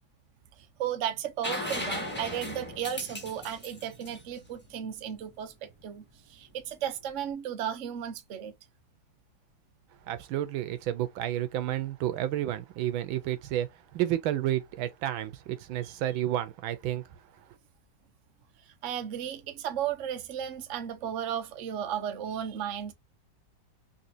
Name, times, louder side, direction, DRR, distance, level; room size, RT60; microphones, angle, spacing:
voice 1, 0.8-6.0 6.3-8.5 18.8-22.9, right 9 dB, 60° right, 0.8 m, -34 dB
sound 1, 1.4-5.1 7.0-7.1, left 1 dB, 5° left, 0.9 m, -37 dB
voice 2, 10.1-17.0, right 12 dB, 85° right, 1.5 m, -31 dB
4.2 x 2.7 x 2.7 m
omnidirectional pair, 2.2 m